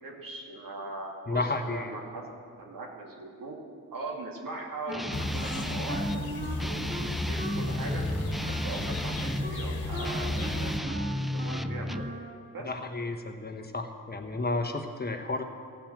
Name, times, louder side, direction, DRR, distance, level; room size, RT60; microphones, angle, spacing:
voice 1, 0.0-2.3 2.6-3.6 3.9-6.1 6.6-7.0 7.3-8.0 8.5-10.9 11.3-12.0 12.5-12.7, right 2 dB, 65° right, -1 dB, 2.4 m, -40 dB
voice 2, 1.3-1.9 12.6-15.4, left 2 dB, 25° left, 5 dB, 1.1 m, -32 dB
Guitar, 4.9-6.2 6.6-9.5 10.0-12.2, equal, ahead, 0.4 m, -34 dB
Wind instrument woodwind instrument, 4.9-12.4, right 1 dB, 30° right, 2.3 m, -41 dB
sound 1, 5.1-10.8, left 2 dB, 85° left, 1.6 m, -34 dB
15.0 x 5.6 x 7.6 m, 2.1 s
supercardioid pair, 55°, 36 cm